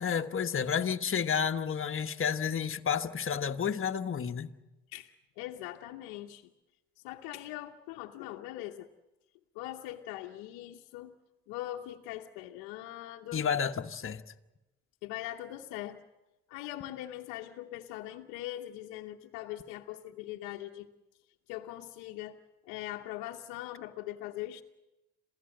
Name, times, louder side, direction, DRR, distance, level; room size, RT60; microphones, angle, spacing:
voice 1, 0.0-4.5 13.3-14.2, left 7 dB, 40° left, 1.3 m, -31 dB
voice 2, 4.9-6.5 7.0-8.9 9.5-11.1 11.5-13.5 15.0-16.0 16.5-20.9 21.5-22.4 22.7-24.6, left 14 dB, 85° left, 1.0 m, -41 dB
27.0 x 16.5 x 7.8 m
hypercardioid pair, 55°, 31 cm